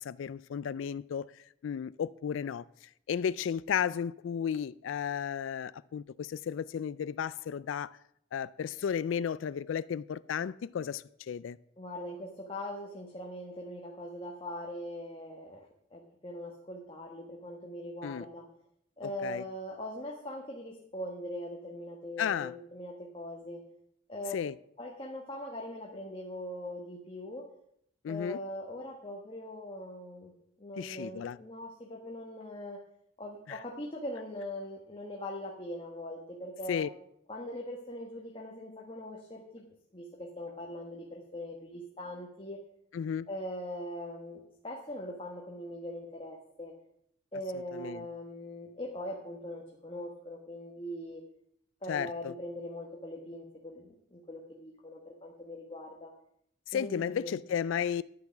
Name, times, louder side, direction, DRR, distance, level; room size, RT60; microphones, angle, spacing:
voice 1, 0.0-7.9 8.3-11.6 18.0-18.3 19.0-19.4 22.2-22.5 24.3-24.5 28.0-28.4 30.8-31.4 33.5-33.6 36.7-36.9 42.9-43.3 47.7-48.0 51.9-52.3 56.7-58.0, left 8 dB, 80° left, 0.3 m, -34 dB
voice 2, 11.8-18.5 19.0-23.6 24.1-24.4 24.8-27.5 28.1-30.3 30.6-32.8 33.2-36.9 37.3-39.6 39.9-42.6 43.3-46.7 47.3-51.2 51.8-56.1 56.7-57.4, left 1 dB, 25° left, 1.4 m, -41 dB
11.0 x 9.4 x 5.9 m
head